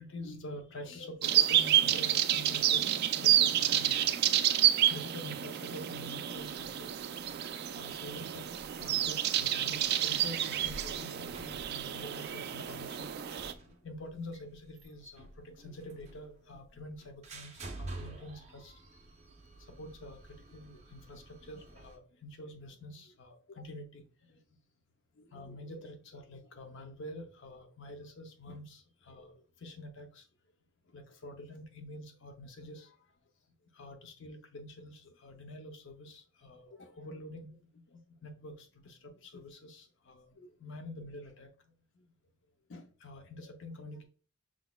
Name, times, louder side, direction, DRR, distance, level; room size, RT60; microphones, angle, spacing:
voice 1, 0.0-4.4 4.9-7.0 7.7-13.3 13.6-15.3 15.6-18.7 19.8-20.2 20.5-24.0 24.3-24.4 25.2-29.3 29.6-30.2 30.9-33.0 33.7-37.6 37.9-41.5 42.7-44.0, left 1 dB, 65° left, 5 dB, 0.6 m, -47 dB
sound 1, 1.2-13.5, right 11 dB, 55° right, 0.3 m, -29 dB
sound 2, 7.0-22.0, right 2 dB, 35° right, 0.7 m, -51 dB
6.0 x 3.9 x 2.2 m, 0.38 s
head